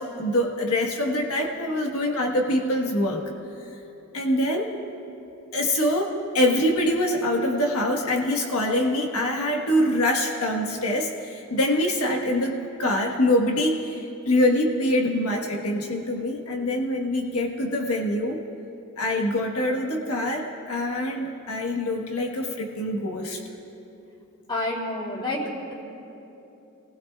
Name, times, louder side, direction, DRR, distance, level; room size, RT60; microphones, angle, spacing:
voice 1, 0.0-3.2 4.1-4.7 5.5-18.4 19.0-23.4, left 1 dB, 90° left, 1 dB, 1.4 m, -24 dB
voice 2, 24.5-25.8, left 1 dB, 25° left, -4 dB, 3.2 m, -29 dB
28.0 x 19.5 x 2.4 m, 2.9 s
head